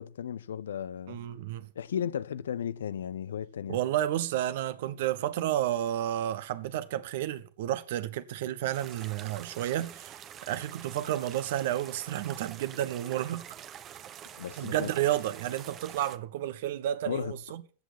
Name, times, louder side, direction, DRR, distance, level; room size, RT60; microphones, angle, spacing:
voice 1, 0.0-1.2 1.8-3.8 14.4-14.9 17.1-17.3, left 9 dB, 65° left, 0.6 m, -35 dB
voice 2, 1.1-1.7 3.7-13.4 14.6-17.6, right 12 dB, 55° right, 1.3 m, -31 dB
sound 1, 8.7-16.2, right 10 dB, 30° right, 1.0 m, -46 dB
14.5 x 8.3 x 6.0 m
figure-of-eight pair, 90°, 0 cm